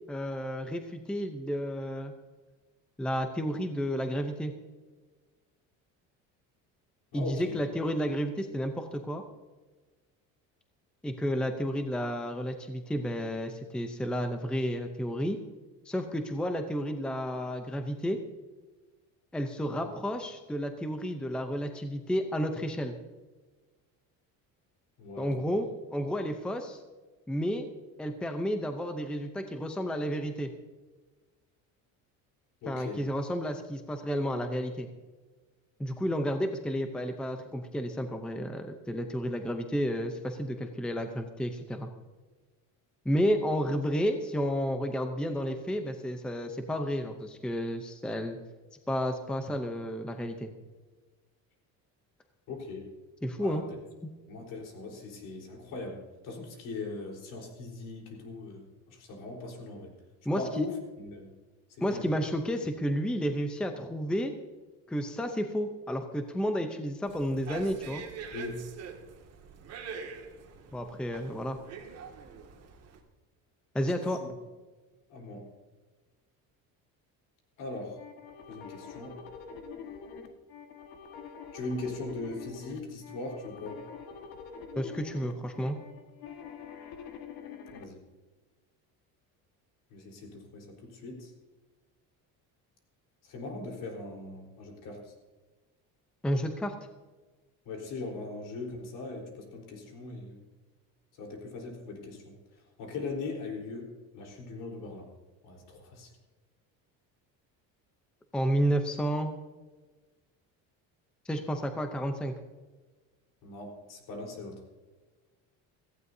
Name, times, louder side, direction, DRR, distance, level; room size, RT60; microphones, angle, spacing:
voice 1, 0.1-2.1 3.0-4.5 7.1-9.2 11.0-15.4 15.9-18.2 19.3-23.0 25.2-26.8 27.3-27.7 28.0-30.5 32.7-34.9 35.8-41.9 43.0-48.4 48.9-50.5 53.2-53.6 54.0-54.1 60.3-60.7 61.8-64.3 64.9-68.0 70.7-71.6 73.7-74.2 84.8-85.8 96.2-96.7 108.3-109.3 111.3-112.3, equal, 5° left, 6 dB, 0.6 m, -31 dB
voice 2, 7.1-7.6 19.8-19.9 25.0-25.4 32.6-33.0 52.5-52.9 53.3-53.6 54.3-60.0 60.3-61.3 61.7-62.0 68.3-68.7 74.2-74.3 75.1-75.5 77.6-78.0 78.5-79.2 81.5-83.8 87.7-88.0 89.9-91.3 93.2-95.1 97.7-100.4 101.2-102.4 102.8-105.1 105.4-106.1 113.4-114.6, left 3 dB, 65° left, 0 dB, 4.1 m, -40 dB
sound 1, 67.1-73.0, right 6 dB, 45° right, 2.0 m, -45 dB
sound 2, 78.0-87.8, left 6 dB, 85° left, 1.7 m, -45 dB
17.0 x 15.5 x 2.7 m, 1.3 s
cardioid pair, 170°, 35 cm